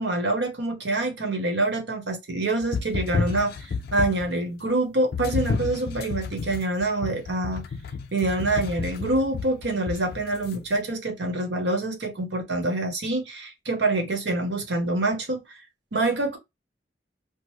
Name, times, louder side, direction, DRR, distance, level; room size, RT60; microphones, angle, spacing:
voice 1, 0.0-7.6 8.1-15.4 15.9-16.4, right 2 dB, 70° right, 0.9 m, -26 dB
sound 1, 2.6-4.4 5.1-10.5, left 4 dB, 55° left, 0.3 m, -31 dB
3.0 x 2.0 x 3.1 m
head